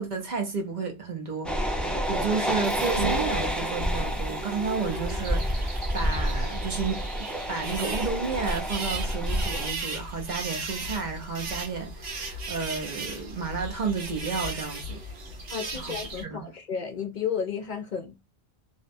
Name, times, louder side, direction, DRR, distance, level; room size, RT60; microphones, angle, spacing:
voice 1, 0.0-15.0 15.7-16.0 16.2-16.5, right 5 dB, 50° right, 0.8 m, -32 dB
sound 1, 1.4-9.7, equal, ahead, 0.4 m, -29 dB
sound 2, 2.0-16.2, right 2 dB, 75° right, 1.1 m, -36 dB
voice 2, 15.5-18.2, left 7 dB, 55° left, 0.6 m, -32 dB
2.6 x 2.2 x 2.4 m
omnidirectional pair, 1.0 m